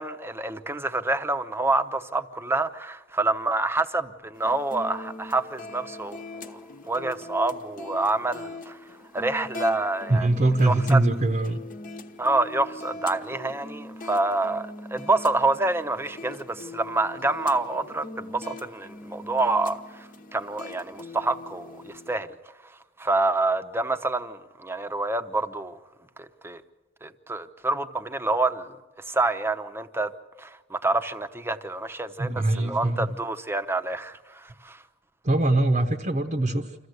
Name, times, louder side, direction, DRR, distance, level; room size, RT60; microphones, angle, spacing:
voice 1, 0.0-6.6 6.9-8.8 9.1-10.3 10.6-11.0 12.2-22.3 23.0-25.8 26.2-26.6 27.0-28.7 29.1-30.1 30.4-34.8, right 2 dB, 10° right, 0.9 m, -27 dB
sound 1, 4.3-22.1, left 2 dB, 45° left, 1.1 m, -41 dB
voice 2, 10.1-11.6 32.2-33.1 35.2-36.8, right 2 dB, 40° right, 0.9 m, -22 dB
26.5 x 14.5 x 8.0 m
head